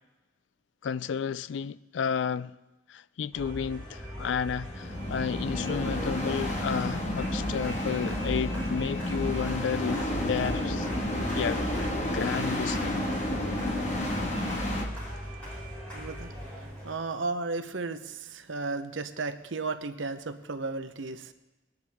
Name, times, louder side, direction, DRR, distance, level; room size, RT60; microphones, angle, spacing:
voice 1, 0.8-2.5 2.9-10.9 11.3-11.6 12.1-13.1, left 7 dB, 65° left, 0.3 m, -32 dB
sound 1, 3.3-16.9, equal, 5° left, 5.4 m, -38 dB
sound 2, 4.7-14.9, left 1 dB, 35° left, 1.5 m, -31 dB
voice 2, 15.9-21.3, right 3 dB, 70° right, 0.8 m, -34 dB
19.0 x 10.5 x 3.6 m
head